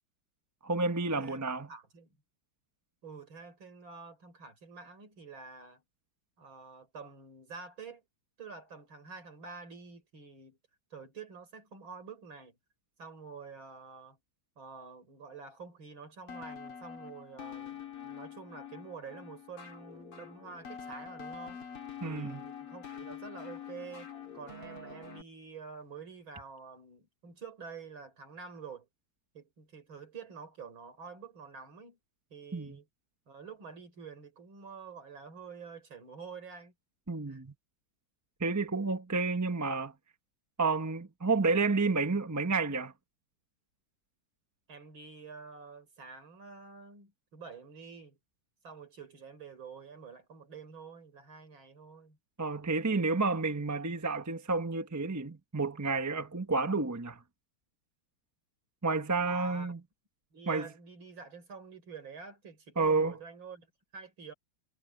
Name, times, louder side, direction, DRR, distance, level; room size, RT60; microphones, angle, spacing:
voice 1, 0.6-1.7 22.0-22.4 32.5-32.8 37.1-37.5 38.4-39.9 40.6-42.9 52.4-57.2 58.8-59.8 60.5-60.7 62.8-63.1, right 3 dB, 15° right, 0.6 m, -30 dB
voice 2, 1.7-2.2 3.0-5.8 6.4-8.0 8.4-10.6 10.9-12.6 13.0-14.2 14.6-21.6 22.1-28.9 29.3-32.0 32.3-32.9 33.3-36.7 37.3-37.4 44.7-48.2 48.6-52.2 59.2-59.7 60.3-64.3, right 5 dB, 65° right, 5.3 m, -48 dB
sound 1, 16.3-25.2, left 7 dB, 85° left, 4.1 m, -45 dB
omnidirectional pair, 2.4 m